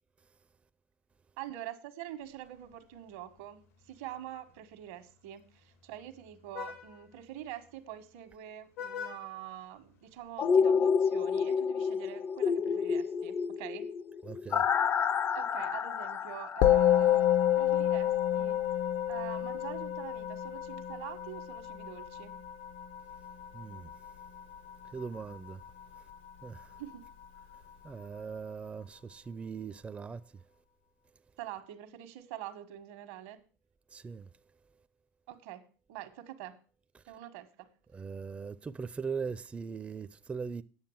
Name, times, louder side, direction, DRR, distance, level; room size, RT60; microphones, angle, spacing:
voice 1, 1.4-13.9 15.3-17.3 17.6-18.6 19.1-22.4 26.8-27.0 31.4-33.4 35.3-35.6 35.9-36.6 37.1-37.7, right 12 dB, 80° right, 1.5 m, -45 dB
Vehicle horn car horn honking, 2.2-10.4, left 7 dB, 90° left, 2.3 m, -49 dB
sound 1, 10.4-18.3 18.6-18.7, left 6 dB, 35° left, 0.5 m, -30 dB
voice 2, 14.2-14.7 23.5-23.9 24.9-25.6 26.4-26.7 27.8-30.4 33.9-34.3 36.9-37.0 37.9-40.6, right 5 dB, 20° right, 0.5 m, -40 dB
Musical instrument, 16.6-26.1, left 12 dB, 70° left, 0.8 m, -29 dB
9.6 x 6.9 x 7.2 m
supercardioid pair, 100°, 7 cm